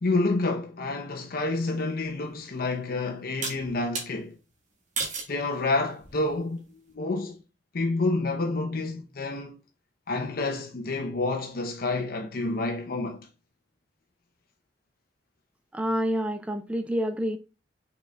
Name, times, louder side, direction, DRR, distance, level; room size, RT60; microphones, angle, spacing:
voice 1, 0.0-4.3 5.3-6.7 6.9-7.4 7.7-9.6 10.1-13.2, left 2 dB, 55° left, 0.7 m, -28 dB
sound 1, 2.0-2.1 3.4-4.1 5.0-5.4 6.0-6.4, right 4 dB, 45° right, 1.5 m, -32 dB
voice 2, 15.7-17.4, equal, 5° right, 0.3 m, -28 dB
5.3 x 4.1 x 2.3 m
head